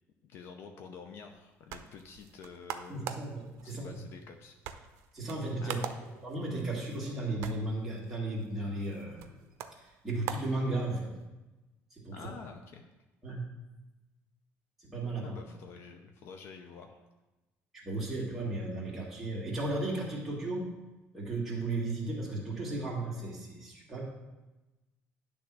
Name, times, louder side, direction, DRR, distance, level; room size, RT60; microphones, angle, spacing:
voice 1, 0.2-3.2 3.6-4.6 5.6-5.9 12.1-12.8 15.2-17.1, left 5 dB, 50° left, 5 dB, 0.6 m, -48 dB
sound 1, 1.3-11.3, right 9 dB, 70° right, 0.6 m, -45 dB
voice 2, 2.9-4.0 5.1-5.8 6.2-9.5 9.8-11.1 11.9-12.3 13.2-13.5 14.8-15.4 17.7-20.7 21.1-24.1, right 2 dB, 5° right, -5 dB, 1.8 m, -35 dB
10.5 x 3.6 x 6.0 m, 1.1 s
cardioid pair, 175°, 5 cm